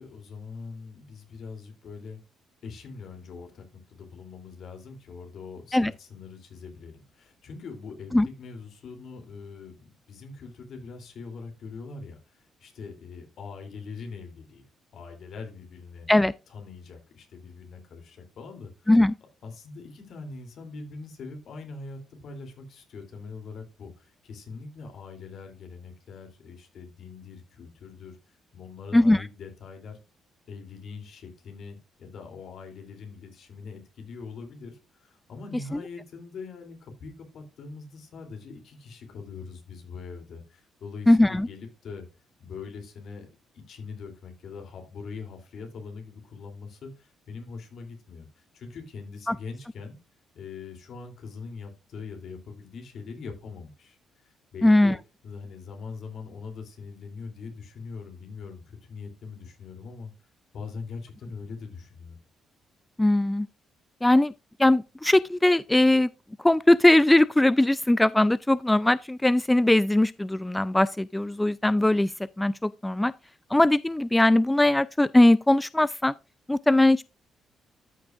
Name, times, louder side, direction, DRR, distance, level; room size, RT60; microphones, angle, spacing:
voice 1, 0.0-2.2 2.6-14.6 14.9-16.1 16.5-18.9 19.4-30.0 30.5-42.0 42.4-43.3 43.5-50.0 50.3-54.0 54.2-55.0 55.2-60.1 60.5-62.2, left 4 dB, 65° left, 2.8 m, -42 dB
voice 2, 28.9-29.2 41.1-41.5 49.3-49.4 54.6-55.0 63.0-63.5 64.0-64.3 64.6-66.1 66.4-73.1 73.5-76.1 76.5-77.0, left 1 dB, 10° left, 0.3 m, -20 dB
13.0 x 6.1 x 2.4 m
cardioid pair, 90°, 0 cm